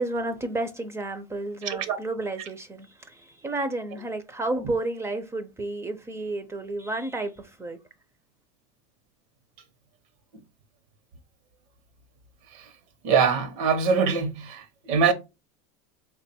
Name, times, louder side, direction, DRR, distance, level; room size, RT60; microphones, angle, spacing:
voice 1, 0.0-7.8, right 2 dB, 15° right, 0.4 m, -31 dB
voice 2, 1.6-2.0 12.5-12.7 13.0-15.1, right 6 dB, 80° right, 0.8 m, -23 dB
3.5 x 2.2 x 4.2 m
supercardioid pair, 125°, 17 cm